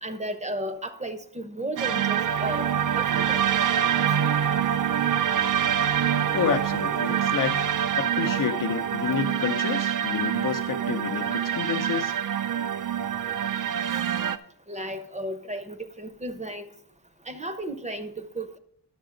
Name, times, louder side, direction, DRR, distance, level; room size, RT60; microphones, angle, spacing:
voice 1, 0.0-2.7 2.9-3.4 14.7-16.6 17.3-18.6, right 1 dB, 20° right, 0.7 m, -34 dB
sound 1, 1.8-14.4, right 9 dB, 55° right, 0.5 m, -25 dB
voice 2, 6.3-7.6 8.0-12.1, left 8 dB, 55° left, 0.6 m, -29 dB
11.0 x 6.7 x 3.8 m
wide cardioid pair, 90°, 39 cm